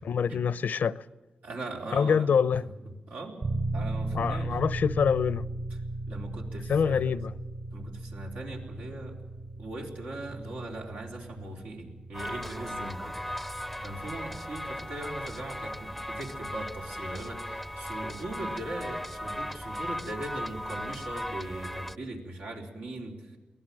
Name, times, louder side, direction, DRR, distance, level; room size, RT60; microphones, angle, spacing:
voice 1, 0.1-1.0 1.9-2.6 4.1-5.5 6.7-7.3, left 6 dB, 75° left, 0.7 m, -25 dB
voice 2, 1.4-2.3 3.1-3.4 3.7-4.5 6.1-7.1 7.7-9.1 9.6-13.5 13.8-23.3, right 2 dB, 90° right, 3.9 m, -40 dB
sound 1, 3.4-20.2, right 2 dB, 55° right, 7.7 m, -38 dB
sound 2, 12.1-22.0, left 1 dB, ahead, 0.6 m, -37 dB
23.5 x 18.0 x 7.6 m
cardioid pair, 75°, 3 cm